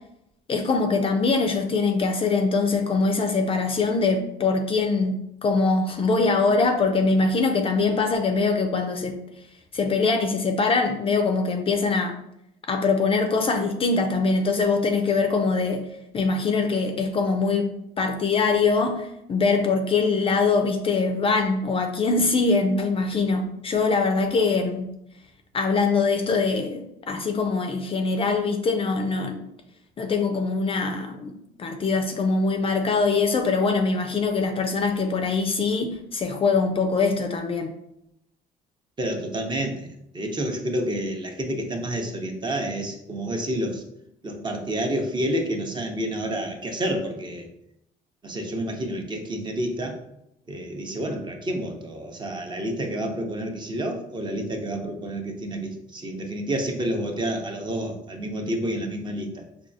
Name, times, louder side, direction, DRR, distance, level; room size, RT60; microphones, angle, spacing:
voice 1, 0.5-9.2 9.7-12.1 12.7-15.8 16.1-17.7 18.0-24.9 25.5-29.4 30.0-31.3 31.6-37.7, left 4 dB, 35° left, 5 dB, 0.4 m, -23 dB
voice 2, 39.0-43.8 44.2-47.5 48.2-49.9 50.5-59.4, right 1 dB, 25° right, 3 dB, 0.7 m, -29 dB
4.6 x 2.3 x 2.6 m, 0.81 s
cardioid pair, 110°, 17 cm